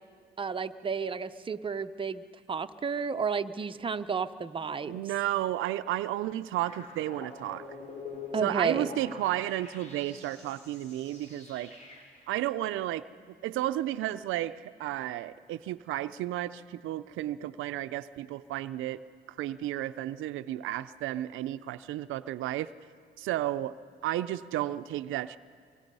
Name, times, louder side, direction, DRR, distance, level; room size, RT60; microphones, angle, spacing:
voice 1, 0.4-2.2 2.5-5.1 8.3-8.9, right 5 dB, 25° right, 8 dB, 0.7 m, -32 dB
voice 2, 4.8-7.6 8.4-11.8 12.3-13.1 13.4-19.0 19.3-22.7 23.2-23.8 24.0-25.4, right 14 dB, 90° right, 12 dB, 0.5 m, -32 dB
sound 1, 6.6-12.3, left 3 dB, 35° left, 4.4 m, -45 dB
24.0 x 23.0 x 5.4 m, 2.1 s
cardioid pair, 90°, 20 cm